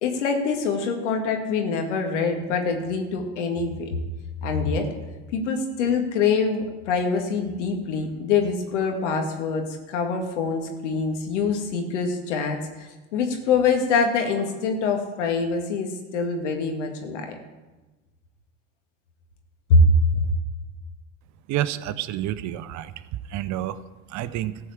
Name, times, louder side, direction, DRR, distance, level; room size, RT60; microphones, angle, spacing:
voice 1, 0.0-3.9 4.4-4.9 5.3-17.3 19.7-19.8 20.1-20.2, left 4 dB, 85° left, 4 dB, 1.9 m, -24 dB
voice 2, 21.5-22.9 23.3-23.8 24.1-24.6, right 13 dB, 55° right, 14 dB, 0.7 m, -29 dB
14.0 x 4.9 x 8.0 m, 1.2 s
hypercardioid pair, 85°, 35 cm